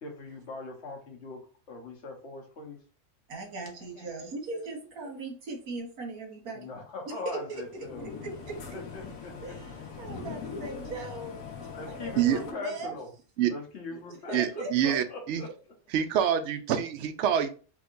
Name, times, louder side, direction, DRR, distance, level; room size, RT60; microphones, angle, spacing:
voice 1, 0.0-2.8 3.7-4.1 4.5-4.7 6.5-8.1 8.7-9.5 11.7-13.1 13.5-15.5, left 3 dB, 55° left, 1 dB, 1.2 m, -41 dB
voice 2, 3.3-6.7 7.1-7.6 8.0-8.8 9.4-11.4 11.9-13.0 14.1-15.0, right 3 dB, 80° right, 1 dB, 1.6 m, -39 dB
sound 1, 7.5-12.5, left 5 dB, 70° left, 1.2 m, -41 dB
voice 3, 14.3-15.4 15.9-17.5, right 9 dB, 65° right, 9 dB, 0.7 m, -26 dB
3.6 x 3.3 x 2.5 m, 0.37 s
omnidirectional pair, 1.5 m